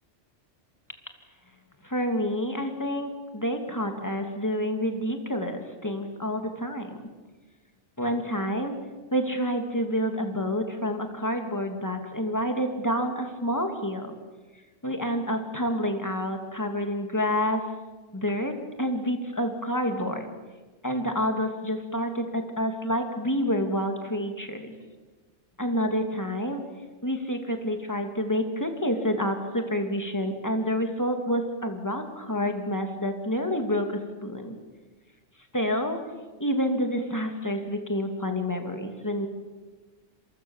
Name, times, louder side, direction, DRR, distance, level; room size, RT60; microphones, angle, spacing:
voice 1, 1.8-7.0 8.0-8.7 9.1-14.1 14.8-17.6 18.1-20.3 20.8-24.7 25.6-26.6 27.0-34.6 35.5-36.0 36.4-39.3, equal, 15° left, 4 dB, 2.8 m, -28 dB
27.5 x 24.0 x 7.4 m, 1.3 s
omnidirectional pair, 1.2 m